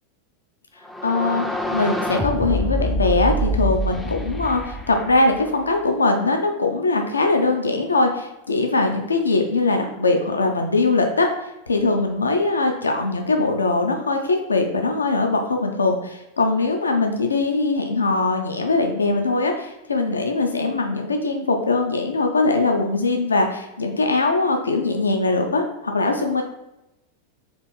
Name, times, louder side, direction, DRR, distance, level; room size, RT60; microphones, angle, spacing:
sound 1, 0.8-5.7, equal, ahead, 0.3 m, -26 dB
voice 1, 1.0-1.5 1.7-26.4, left 3 dB, 75° left, 4 dB, 0.4 m, -21 dB
2.9 x 2.6 x 3.3 m, 0.93 s
figure-of-eight pair, 90°, 0 cm